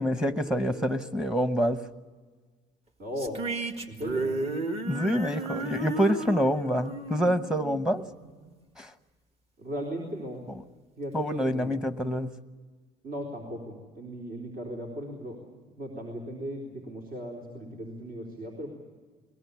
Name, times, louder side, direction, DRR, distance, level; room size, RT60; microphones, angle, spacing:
voice 1, 0.0-1.8 4.9-8.0 8.8-8.9 11.1-12.3, equal, 5° right, 1.0 m, -26 dB
voice 2, 3.0-3.4 3.9-4.4 9.6-10.4 11.0-11.8 13.0-15.5 15.8-18.7, equal, 60° right, 4.0 m, -37 dB
sound 1, 3.2-8.5, right 2 dB, 35° right, 1.8 m, -34 dB
22.0 x 20.5 x 8.4 m
cardioid pair, 110°, 17 cm